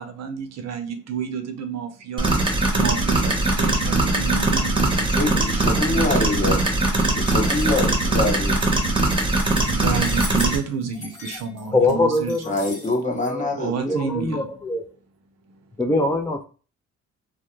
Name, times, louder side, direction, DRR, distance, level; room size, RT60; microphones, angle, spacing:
voice 1, 0.0-2.4 2.7-6.6 9.6-12.4 13.5-14.5 15.5-15.6, right 7 dB, 60° right, 0.6 m, -30 dB
sound 1, 2.2-10.6, right 2 dB, 15° right, 0.8 m, -21 dB
voice 2, 4.8-6.6 7.1-8.5 12.5-14.0, left 2 dB, 25° left, 0.8 m, -25 dB
sound 2, 7.0-13.3, left 2 dB, 55° left, 1.1 m, -39 dB
voice 3, 11.7-12.6 13.2-13.5 13.8-14.9 15.8-16.5, left 2 dB, 10° left, 0.3 m, -22 dB
2.3 x 2.1 x 2.9 m
cardioid pair, 90°, 30 cm